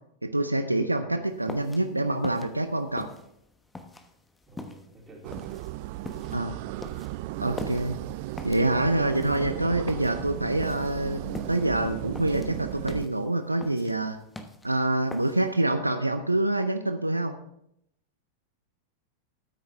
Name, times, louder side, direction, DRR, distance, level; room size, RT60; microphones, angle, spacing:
voice 1, 0.2-3.1 6.3-6.5 7.4-8.0 8.4-14.2 14.6-17.3, right 2 dB, 85° right, 8 dB, 0.6 m, -26 dB
sound 1, 1.3-15.6, left 2 dB, 10° left, 1.1 m, -43 dB
voice 2, 4.5-5.6 6.3-6.6, equal, 20° right, -2 dB, 3.6 m, -48 dB
sound 2, 5.2-13.1, right 17 dB, 50° right, 0.3 m, -35 dB
13.0 x 9.5 x 3.5 m, 0.76 s
figure-of-eight pair, 90°, 0 cm